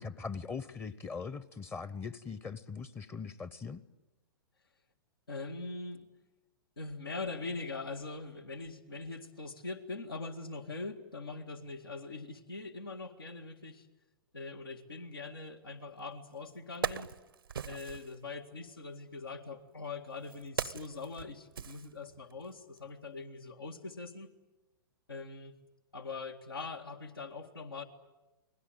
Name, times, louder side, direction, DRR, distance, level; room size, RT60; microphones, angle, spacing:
voice 1, 0.0-3.8, left 5 dB, 20° left, 18 dB, 0.8 m, -41 dB
voice 2, 5.3-6.1 6.8-13.9 14.3-17.1 17.6-24.3 25.1-25.6 25.9-27.8, left 3 dB, 80° left, 4 dB, 2.0 m, -42 dB
Wood, 16.0-16.1 16.5-18.1 19.1-22.4 22.8-22.9, right 7 dB, 80° right, 0.8 m, -40 dB
29.5 x 20.5 x 9.0 m, 1.1 s
figure-of-eight pair, 105°, 12 cm